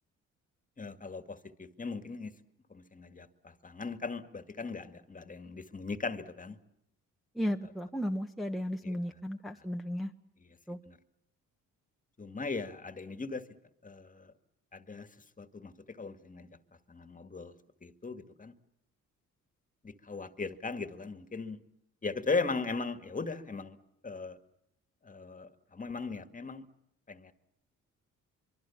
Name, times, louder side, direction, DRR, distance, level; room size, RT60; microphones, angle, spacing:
voice 1, 0.8-2.3 2.7-6.6 8.8-9.0 9.6-9.7 10.9-11.0 12.2-13.5 13.8-14.3 14.7-15.1 15.4-16.5 16.9-17.5 17.8-18.5 19.8-21.6 22.0-23.8 24.0-24.4 25.0-26.7 27.1-27.3, left 4 dB, 25° left, 10 dB, 2.0 m, -38 dB
voice 2, 7.3-10.1 10.7-10.8, equal, ahead, 2 dB, 1.3 m, -34 dB
24.5 x 24.0 x 7.2 m, 0.79 s
cardioid pair, 90°, 30 cm